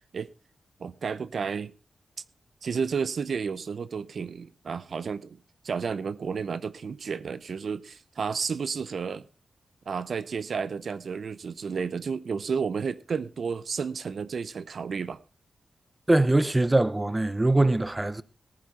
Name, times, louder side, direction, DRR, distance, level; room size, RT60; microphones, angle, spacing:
voice 1, 0.8-1.7 2.6-5.4 5.6-9.3 9.9-15.2, right 5 dB, 70° right, 0.7 m, -31 dB
voice 2, 16.1-18.2, right 2 dB, 20° right, 0.8 m, -22 dB
18.5 x 9.9 x 4.2 m
wide cardioid pair, 95°, 0 cm